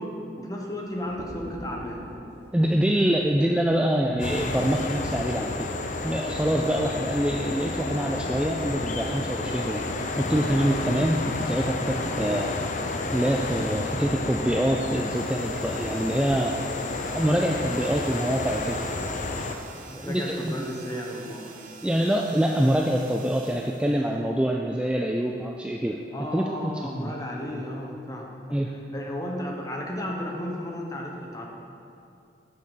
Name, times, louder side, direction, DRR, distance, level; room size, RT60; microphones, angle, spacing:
voice 1, 0.0-2.0 19.9-21.6 26.1-28.6 28.9-31.5, equal, 20° left, -1 dB, 1.1 m, -34 dB
sound 1, 1.0-4.0 4.4-4.6 4.9-5.0 5.3-14.2, equal, 65° right, 1.5 m, -45 dB
voice 2, 2.5-5.7 6.0-9.8 10.2-12.5 13.1-16.6 17.1-18.8 20.0-20.6 21.8-26.0 26.3-27.1 28.5-28.7, right 1 dB, 5° right, 0 dB, 0.4 m, -25 dB
sound 2, 4.2-19.5, left 3 dB, 45° left, 0.6 m, -31 dB
sound 3, 14.7-24.6, right 4 dB, 45° right, 0.7 m, -46 dB
9.4 x 5.7 x 6.7 m, 2.5 s
head